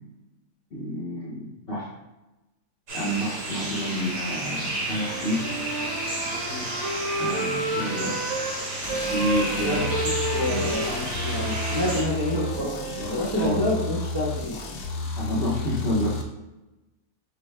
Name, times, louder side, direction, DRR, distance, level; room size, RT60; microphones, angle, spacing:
voice 1, 0.7-1.9 2.9-5.5 7.2-8.2 9.0-9.8 10.4-10.7 13.3-13.6 15.2-16.2, equal, 40° left, -7 dB, 1.0 m, -29 dB
sound 1, 2.9-12.0, right 1 dB, 85° right, 1.9 m, -32 dB
Wind instrument woodwind instrument, 4.9-8.5 8.9-13.2, right 2 dB, 60° right, 1.1 m, -32 dB
sound 2, 8.8-16.2, left 3 dB, 75° left, 1.1 m, -32 dB
voice 2, 9.6-14.6, left 1 dB, 20° right, -7 dB, 0.9 m, -28 dB
6.2 x 2.3 x 3.3 m, 1.0 s
omnidirectional pair, 1.7 m